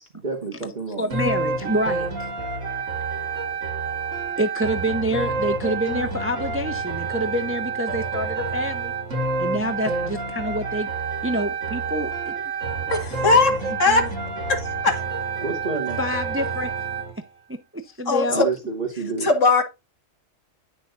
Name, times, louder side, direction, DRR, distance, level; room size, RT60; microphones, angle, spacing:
voice 1, 0.1-1.2 15.4-16.0 18.3-19.3, right 4 dB, 35° right, 1.8 m, -29 dB
voice 2, 1.0-2.3 4.4-8.9 9.4-10.9 11.2-12.3 16.0-16.7 17.5-18.4, equal, 15° right, 0.6 m, -27 dB
sound 1, 1.1-17.1, right 4 dB, 75° right, 2.1 m, -28 dB
voice 3, 12.9-14.0 14.6-14.9 18.1-18.5 19.2-19.6, left 3 dB, 70° left, 2.3 m, -19 dB
9.9 x 6.3 x 2.6 m
omnidirectional pair, 1.3 m